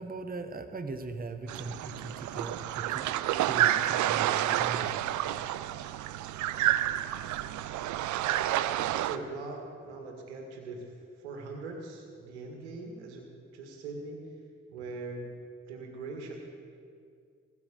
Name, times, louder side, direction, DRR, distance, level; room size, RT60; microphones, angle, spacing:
voice 1, 0.0-3.1 3.4-4.9, right 3 dB, 25° right, 8 dB, 1.2 m, -39 dB
sound 1, 1.5-9.2, right 12 dB, 60° right, 0.6 m, -29 dB
voice 2, 9.0-14.2 14.7-15.3 15.7-16.4, right 3 dB, 85° right, 2 dB, 1.9 m, -41 dB
18.0 x 8.4 x 8.4 m, 2.3 s
hypercardioid pair, 40°, 33 cm